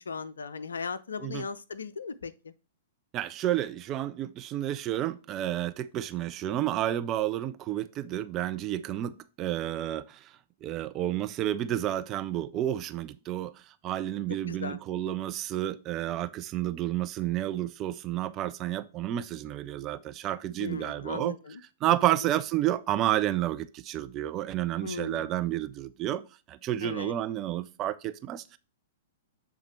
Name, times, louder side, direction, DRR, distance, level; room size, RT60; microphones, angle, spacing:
voice 1, 0.0-2.5 8.9-9.1 14.5-14.8 20.6-21.6 22.1-22.2 24.8-25.3 26.8-27.1, left 5 dB, 70° left, 0.5 m, -37 dB
voice 2, 3.1-10.2 10.6-13.5 13.8-21.4 21.8-26.2 26.5-28.6, right 13 dB, 30° right, 0.5 m, -30 dB
7.3 x 3.6 x 4.4 m
figure-of-eight pair, 105°, 0 cm